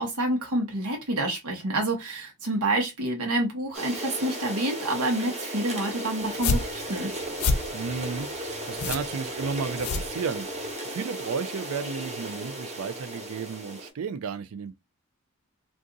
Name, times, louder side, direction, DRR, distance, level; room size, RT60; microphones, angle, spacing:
voice 1, 0.0-7.1, right 1 dB, 85° right, 1.0 m, -28 dB
sound 1, 3.7-13.9, right 1 dB, 30° right, 1.0 m, -35 dB
sound 2, 6.2-10.7, left 3 dB, 80° left, 0.6 m, -30 dB
voice 2, 7.7-10.5 10.9-14.7, right 5 dB, 70° right, 0.4 m, -33 dB
2.5 x 2.4 x 3.8 m
head